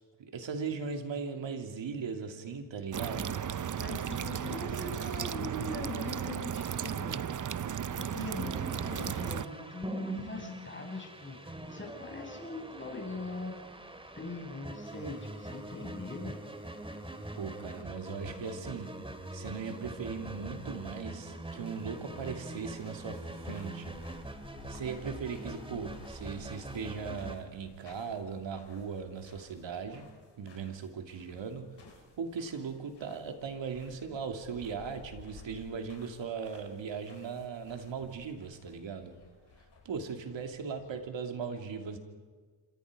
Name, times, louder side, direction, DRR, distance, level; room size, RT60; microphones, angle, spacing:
voice 1, 0.2-3.4 3.6-3.7 17.4-18.9 19.3-24.0 24.7-30.1 30.4-31.7 32.2-39.2 39.8-42.0, right 5 dB, 70° right, 4 dB, 3.1 m, -38 dB
sound 1, 2.9-9.5, right 8 dB, 40° right, 0.7 m, -35 dB
voice 2, 3.8-7.5 7.9-13.5 14.2-16.4, left 2 dB, 25° left, 1 dB, 7.1 m, -41 dB
sound 2, 8.4-27.4, right 1 dB, 10° right, 2.3 m, -43 dB
sound 3, 21.5-41.1, left 4 dB, 60° left, 6.2 m, -56 dB
28.5 x 26.0 x 5.2 m, 1.5 s
cardioid pair, 85°, 46 cm